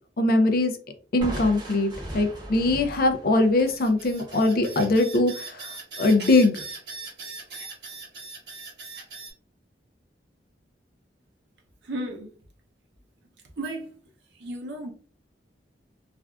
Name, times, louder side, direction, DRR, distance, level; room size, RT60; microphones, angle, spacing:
voice 1, 0.2-0.7 1.1-5.7 6.0-6.6, left 2 dB, 55° left, 0.5 m, -21 dB
Crushing, 1.2-5.0, right 1 dB, 25° right, 1.1 m, -38 dB
sound 1, 3.5-9.3, right 3 dB, 65° right, 1.4 m, -40 dB
voice 2, 11.8-12.4 13.6-14.0 14.3-14.9, right 1 dB, 80° right, 0.6 m, -34 dB
3.3 x 2.4 x 2.3 m
head